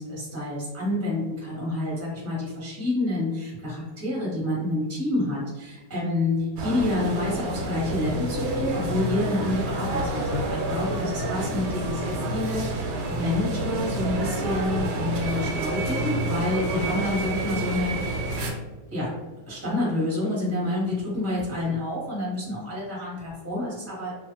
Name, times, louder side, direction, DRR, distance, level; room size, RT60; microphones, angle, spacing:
voice 1, 0.0-18.2 18.9-19.1 19.5-24.1, left 1 dB, 10° right, -7 dB, 0.9 m, -28 dB
sound 1, 6.6-18.5, right 1 dB, 80° right, 1.1 m, -29 dB
2.5 x 2.5 x 2.9 m, 1.2 s
omnidirectional pair, 1.8 m